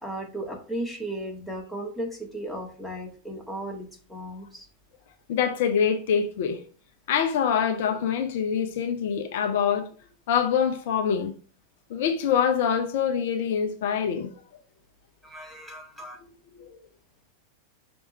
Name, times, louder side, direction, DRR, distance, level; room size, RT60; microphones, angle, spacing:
voice 1, 0.0-4.6 15.2-16.2, right 1 dB, ahead, 1.7 m, -35 dB
voice 2, 5.3-6.6 7.1-9.9 10.3-11.3 11.9-14.3 16.6-16.8, left 7 dB, 55° left, 0.7 m, -25 dB
5.9 x 3.5 x 5.2 m
figure-of-eight pair, 90°, 0 cm